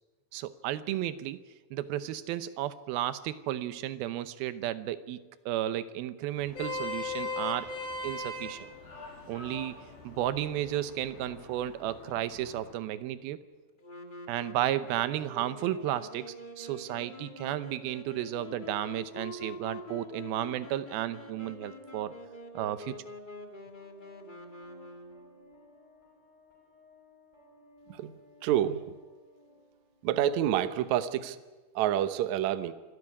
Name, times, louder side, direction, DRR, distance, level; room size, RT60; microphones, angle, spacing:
voice 1, 0.3-1.4 1.7-7.7 8.0-8.6 9.3-9.8 10.0-13.4 14.3-22.1 22.5-23.0, right 13 dB, 90° right, 13 dB, 2.8 m, -33 dB
Vehicle horn car horn honking, 6.3-12.7, left 2 dB, 80° left, 5.8 m, -40 dB
Wind instrument woodwind instrument, 13.8-25.5, left 2 dB, 30° left, 0.8 m, -46 dB
sound 1, 17.3-30.3, left 1 dB, 10° right, 4.8 m, -59 dB
voice 2, 28.4-28.8 30.0-31.4 31.8-32.7, right 11 dB, 70° right, 12 dB, 1.9 m, -28 dB
26.0 x 12.5 x 9.8 m, 1.3 s
omnidirectional pair, 4.2 m